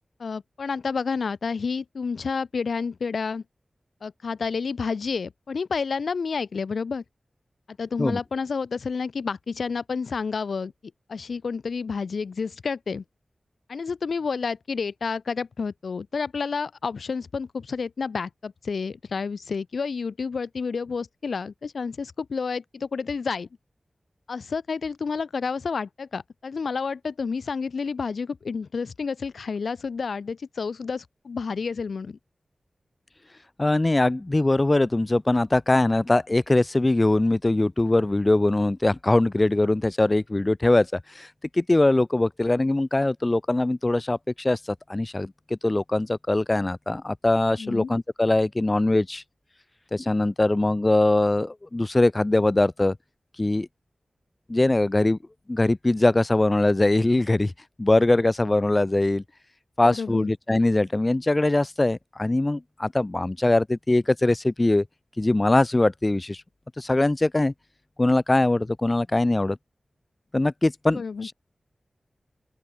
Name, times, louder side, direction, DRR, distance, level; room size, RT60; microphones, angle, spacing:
voice 1, 0.2-3.4 4.0-7.0 7.7-10.7 11.1-13.0 13.7-23.5 24.3-32.2 47.6-47.9 59.8-60.3 70.9-71.3, left 5 dB, 85° left, 1.7 m, -30 dB
voice 2, 33.6-41.3 41.5-49.2 49.9-53.0 53.4-53.7 54.5-55.2 55.5-57.5 57.8-59.2 59.8-64.8 65.2-66.4 66.8-67.5 68.0-69.6 70.3-71.3, left 2 dB, 30° left, 0.7 m, -22 dB
open air
wide cardioid pair, 75°, 0 cm